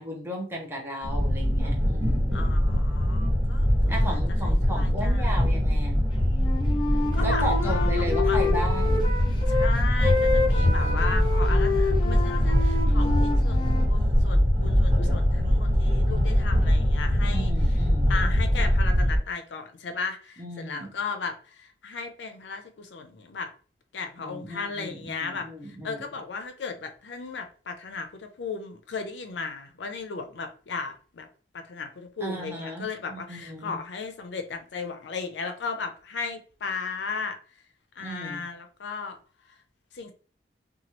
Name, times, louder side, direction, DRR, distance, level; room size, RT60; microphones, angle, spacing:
voice 1, 0.0-2.5 3.9-6.0 7.2-9.0 10.6-11.6 17.3-18.2 20.4-20.9 24.2-26.0 32.2-33.8 38.0-38.4, equal, 15° right, 0.7 m, -35 dB
sound 1, 1.0-19.2, equal, 45° right, 1.4 m, -22 dB
voice 2, 2.3-5.5 7.1-8.4 9.5-17.8 18.1-23.5 23.9-31.3 31.5-37.4 38.0-39.2 39.9-40.1, left 4 dB, 80° left, 0.5 m, -36 dB
Wind instrument woodwind instrument, 6.3-9.7 10.0-13.9, left 3 dB, 25° left, 0.6 m, -29 dB
2.9 x 2.3 x 2.8 m
head